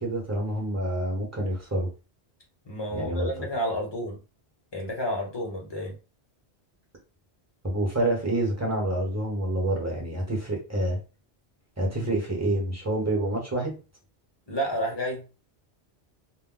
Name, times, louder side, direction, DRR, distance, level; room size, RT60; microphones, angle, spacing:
voice 1, 0.0-1.9 2.9-3.3 7.6-11.0 11.8-13.8, right 1 dB, 15° right, -2 dB, 0.9 m, -27 dB
voice 2, 2.7-4.2 4.7-5.9 14.5-15.2, equal, 25° left, 0 dB, 0.8 m, -30 dB
2.2 x 2.1 x 3.7 m, 0.32 s
omnidirectional pair, 1.1 m